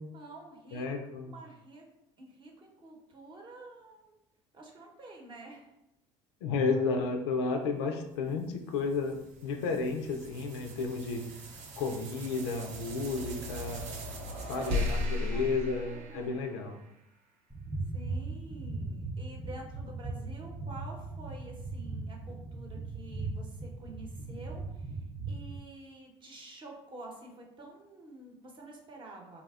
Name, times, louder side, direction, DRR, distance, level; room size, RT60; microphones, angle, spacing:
voice 1, 0.1-0.9 1.2-1.8 2.2-4.2 4.5-5.7 14.5-16.6 17.9-29.4, right 2 dB, 35° right, 0 dB, 0.8 m, -49 dB
voice 2, 0.7-1.3 6.4-9.2 9.4-11.2 11.8-13.8 14.4-16.8, left 4 dB, 85° left, 4 dB, 0.4 m, -32 dB
sound 1, 8.3-16.9, left 1 dB, 60° right, 0.5 m, -38 dB
sound 2, 17.5-25.6, right 3 dB, 5° right, 0.5 m, -39 dB
3.3 x 2.1 x 2.4 m, 0.86 s
hypercardioid pair, 75°, 14 cm